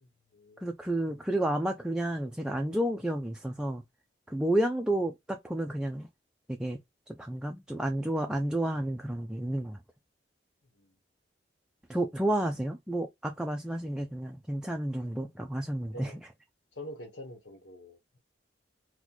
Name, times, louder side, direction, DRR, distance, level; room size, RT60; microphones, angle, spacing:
voice 1, 0.0-0.7 10.8-10.9 15.9-16.2 16.8-18.2, equal, 75° left, 1.1 m, -46 dB
voice 2, 0.6-3.8 4.3-6.1 6.5-6.8 7.2-9.8 11.9-16.3, right 1 dB, 5° right, 0.3 m, -31 dB
3.0 x 2.2 x 3.9 m
head